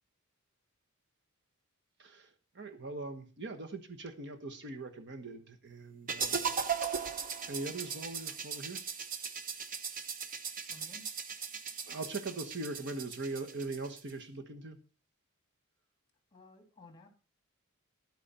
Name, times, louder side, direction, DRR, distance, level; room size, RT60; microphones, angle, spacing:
voice 1, 2.0-6.5 7.5-8.8 11.9-14.8, right 2 dB, 55° right, 6 dB, 1.2 m, -41 dB
sound 1, 6.1-14.1, right 6 dB, 40° right, 0.9 m, -38 dB
voice 2, 10.7-11.0 16.3-17.1, left 2 dB, 20° left, 5 dB, 2.4 m, -55 dB
11.0 x 9.0 x 4.3 m, 0.34 s
head